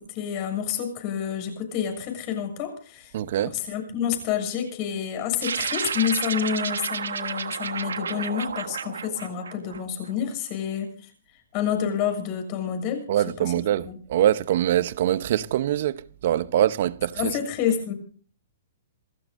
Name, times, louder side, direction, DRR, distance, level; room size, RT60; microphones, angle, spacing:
voice 1, 0.1-3.1 3.4-11.1 11.5-13.5 13.8-13.9 17.1-17.9, left 8 dB, 40° left, 6.9 m, -28 dB
voice 2, 3.1-3.6 13.1-17.4, right 11 dB, 60° right, 0.8 m, -24 dB
sound 1, 5.4-10.1, right 6 dB, 90° right, 1.4 m, -31 dB
27.5 x 14.0 x 2.6 m
hypercardioid pair, 140°, 0 cm